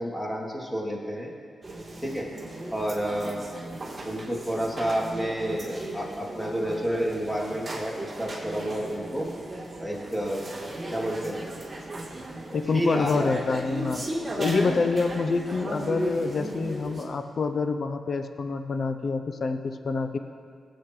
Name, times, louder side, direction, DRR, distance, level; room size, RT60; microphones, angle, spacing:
voice 1, 0.0-1.3 2.0-2.3 2.7-3.4 4.0-9.3 9.8-10.4 10.9-11.4 12.7-13.3, right 1 dB, 5° left, -3 dB, 2.9 m, -30 dB
sound 1, 1.6-17.0, right 1 dB, 35° right, 3.1 m, -36 dB
voice 2, 12.5-14.1 14.4-20.2, left 4 dB, 60° left, 8 dB, 0.6 m, -27 dB
19.0 x 8.5 x 3.2 m, 2.2 s
supercardioid pair, 45°, 0 cm